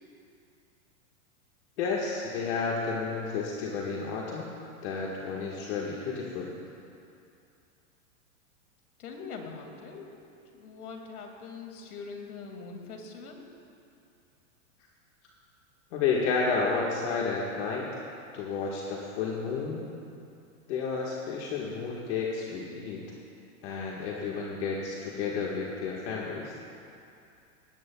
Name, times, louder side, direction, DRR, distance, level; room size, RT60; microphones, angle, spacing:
voice 1, 1.8-4.5 4.8-6.5 15.9-17.9 18.3-19.8 20.7-23.0 23.6-26.5, left 5 dB, 50° left, -3 dB, 1.7 m, -31 dB
voice 2, 9.0-10.1 10.5-13.5, left 4 dB, 85° left, 2 dB, 2.4 m, -42 dB
19.0 x 16.0 x 2.3 m, 2.6 s
supercardioid pair, 155°, 43 cm